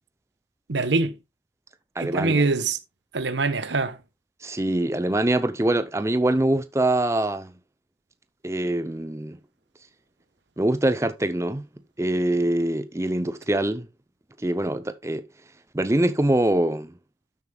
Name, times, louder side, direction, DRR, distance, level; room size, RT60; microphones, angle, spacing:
voice 1, 0.7-1.1 2.0-2.8 3.1-4.0, right 3 dB, 80° right, 1.1 m, -23 dB
voice 2, 2.0-2.4 4.4-7.5 8.4-9.4 10.6-11.7 12.0-13.9 14.4-15.3 15.7-16.9, right 1 dB, 15° right, 0.5 m, -24 dB
12.5 x 7.3 x 2.3 m
head